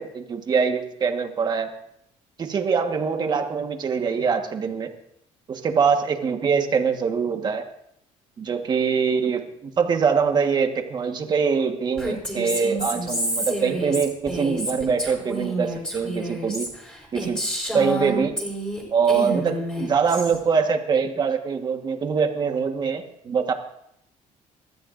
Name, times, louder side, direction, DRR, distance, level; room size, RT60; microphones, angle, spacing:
voice 1, 0.0-1.7 2.4-4.9 5.5-7.6 8.4-16.7 17.1-17.4 17.7-18.3 18.9-23.5, right 6 dB, 30° right, 5 dB, 1.4 m, -23 dB
Female speech woman speaking, 12.0-18.8 19.1-20.4, right 1 dB, 5° left, 4.7 m, -29 dB
27.5 x 13.5 x 2.6 m, 0.74 s
cardioid pair, 155°, 13 cm